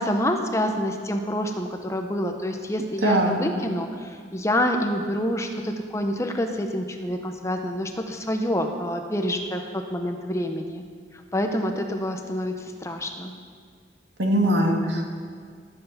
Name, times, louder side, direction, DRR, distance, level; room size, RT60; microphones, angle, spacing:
voice 1, 0.0-10.8 11.3-13.3, equal, 15° left, 4 dB, 0.8 m, -27 dB
voice 2, 3.0-3.4 14.2-15.1, right 1 dB, 90° right, 1 dB, 2.1 m, -21 dB
18.0 x 8.0 x 5.8 m, 2.1 s
head